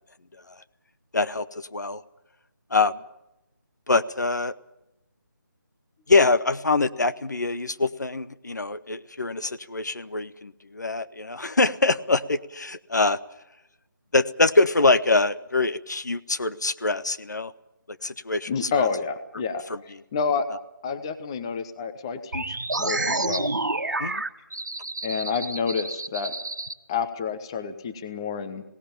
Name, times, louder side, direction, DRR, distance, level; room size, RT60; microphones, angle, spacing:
voice 1, 1.1-2.0 2.7-3.0 3.9-4.5 6.1-13.2 14.1-17.5 18.0-18.9 19.7-19.8 24.0-24.2, left 3 dB, 60° left, 13 dB, 0.9 m, -24 dB
voice 2, 18.5-19.6 20.1-20.5 20.8-23.5 25.0-26.3 26.9-28.6, left 6 dB, 15° left, 9 dB, 0.7 m, -29 dB
sound 1, 22.3-26.7, right 2 dB, 60° right, 1.6 m, -29 dB
19.5 x 18.0 x 8.9 m, 0.89 s
figure-of-eight pair, 155°, 11 cm